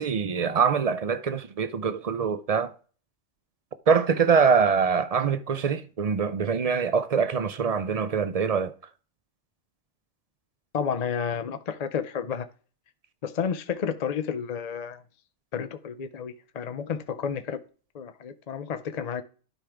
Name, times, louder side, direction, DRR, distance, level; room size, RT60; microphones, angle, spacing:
voice 1, 0.0-2.7 3.9-8.7, right 6 dB, 50° right, 0.4 m, -24 dB
voice 2, 10.7-12.5 13.2-15.0 15.5-17.6 17.9-19.2, left 7 dB, 50° left, 0.5 m, -31 dB
12.0 x 5.0 x 3.4 m
omnidirectional pair, 1.2 m